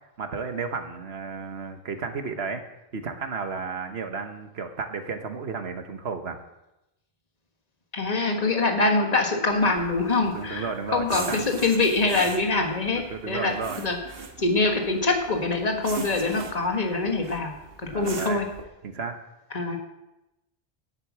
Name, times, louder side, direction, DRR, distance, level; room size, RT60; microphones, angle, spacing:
voice 1, 0.2-2.6 2.9-6.4 10.3-11.4 12.9-13.9 17.9-18.4 18.8-19.2, right 5 dB, 85° right, 7 dB, 1.4 m, -33 dB
voice 2, 7.9-14.0 14.4-17.5 17.8-18.5 19.5-19.8, left 3 dB, 40° left, 2 dB, 1.6 m, -24 dB
sound 1, 9.5-18.6, right 4 dB, 65° right, 1.4 m, -41 dB
10.5 x 8.2 x 7.3 m, 0.93 s
omnidirectional pair, 1.0 m